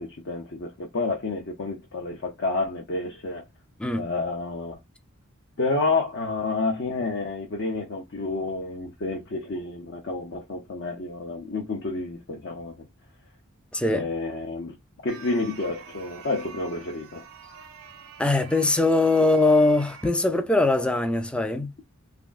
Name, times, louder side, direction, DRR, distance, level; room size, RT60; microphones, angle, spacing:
voice 1, 0.0-3.5 4.0-4.8 5.6-12.9 13.9-14.8 15.0-17.2, left 3 dB, 55° left, 0.6 m, -29 dB
voice 2, 13.7-14.1 18.2-21.7, left 2 dB, 5° left, 0.3 m, -21 dB
sound 1, 15.1-20.1, right 7 dB, 70° right, 0.6 m, -46 dB
3.4 x 2.6 x 2.4 m
head